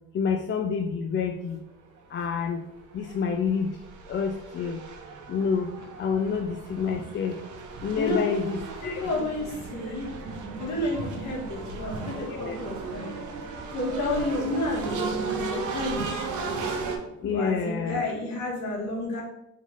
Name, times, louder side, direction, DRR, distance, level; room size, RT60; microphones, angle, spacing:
voice 1, 0.1-1.6 2.1-2.6 2.9-3.8 4.1-4.8 5.3-5.7 6.0-7.4 7.8-9.0 9.9-10.0 12.2-12.6 17.2-18.1, left 6 dB, 40° left, 4 dB, 0.4 m, -28 dB
sound 1, 2.2-2.3 2.8-17.0, right 4 dB, 75° right, 0.9 m, -36 dB
voice 2, 8.8-10.1 10.6-13.2 13.7-16.4 17.2-19.2, left 1 dB, 65° left, -2 dB, 1.5 m, -31 dB
3.8 x 3.0 x 3.7 m, 0.84 s
cardioid pair, 90°, 30 cm